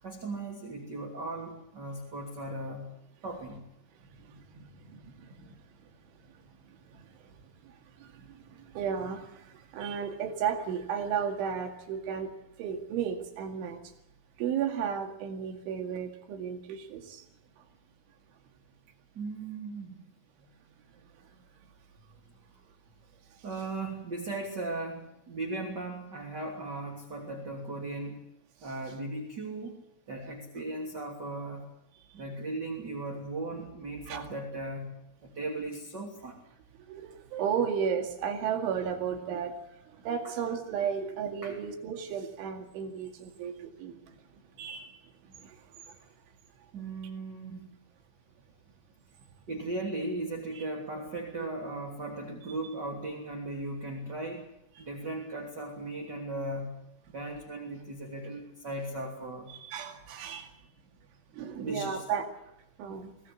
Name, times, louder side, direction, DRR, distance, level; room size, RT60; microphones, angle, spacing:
voice 1, 0.0-2.9 3.2-3.6 8.5-8.6 19.1-20.0 23.4-28.2 28.6-29.8 30.1-31.7 32.1-34.9 35.2-36.4 41.4-41.6 46.7-47.7 49.5-54.5 54.8-56.7 57.1-59.5 61.6-62.0, right 2 dB, 25° right, 0 dB, 3.0 m, -37 dB
voice 2, 4.3-5.6 6.9-7.1 7.6-7.7 8.0-12.3 12.6-13.8 14.4-17.2 34.1-34.2 36.9-39.6 40.0-44.1 44.6-45.0 45.4-45.6 50.6-50.7 51.4-51.5 59.5-60.5 61.3-62.3 62.8-63.1, right 7 dB, 85° right, 4 dB, 4.6 m, -34 dB
23.5 x 18.0 x 8.5 m, 0.82 s
omnidirectional pair, 5.3 m